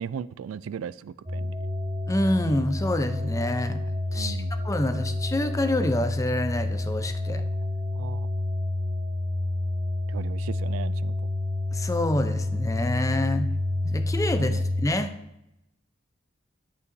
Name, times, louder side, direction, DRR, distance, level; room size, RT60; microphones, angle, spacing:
voice 1, 0.0-1.6 4.1-4.6 7.9-8.3 10.1-11.1 14.4-14.6, right 7 dB, 85° right, 17 dB, 0.3 m, -37 dB
sound 1, 1.3-14.9, left 2 dB, 20° right, 1.2 m, -29 dB
voice 2, 2.1-3.8 4.1-4.4 4.6-7.4 11.7-13.5 13.8-15.2, left 1 dB, 15° left, 8 dB, 0.6 m, -27 dB
11.0 x 8.3 x 2.7 m, 0.86 s
head